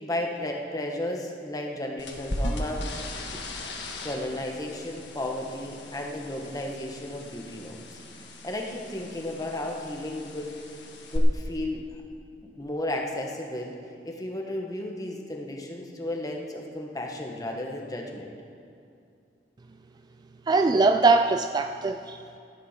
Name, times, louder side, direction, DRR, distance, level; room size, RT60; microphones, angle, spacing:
voice 1, 0.0-2.9 4.0-8.0 8.4-10.5 11.1-11.8 12.6-13.7 14.0-18.3, left 1 dB, 20° left, 1 dB, 1.4 m, -33 dB
sound 1, 2.0-11.2, left 1 dB, 85° left, 1.6 m, -38 dB
voice 2, 20.5-22.4, right 3 dB, 25° right, 7 dB, 0.3 m, -22 dB
13.5 x 11.0 x 5.8 m, 2.5 s
head